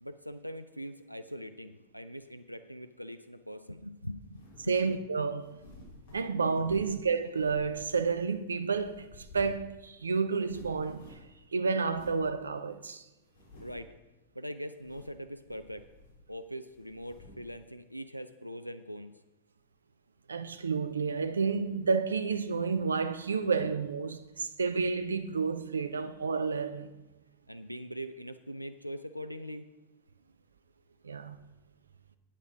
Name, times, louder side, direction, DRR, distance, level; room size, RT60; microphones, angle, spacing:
voice 1, 0.0-4.8 13.6-13.9 14.4-15.9 16.3-19.1 27.5-29.7, equal, 90° left, 0.4 m, -42 dB
sound 1, 4.3-4.8 5.4-7.0 7.4-8.3 8.7-9.7 9.9-10.0 10.3-11.4 11.9-12.2 12.7-12.8 13.3-13.9 14.7-15.2 15.4-16.3 16.7-17.5, left 1 dB, 50° left, 3.3 m, -53 dB
voice 2, 4.7-5.6 6.1-9.1 9.3-11.2 11.5-13.0 20.3-26.9 31.0-31.4, right 5 dB, 75° right, 0.5 m, -30 dB
8.6 x 8.2 x 5.1 m
figure-of-eight pair, 90°, 0 cm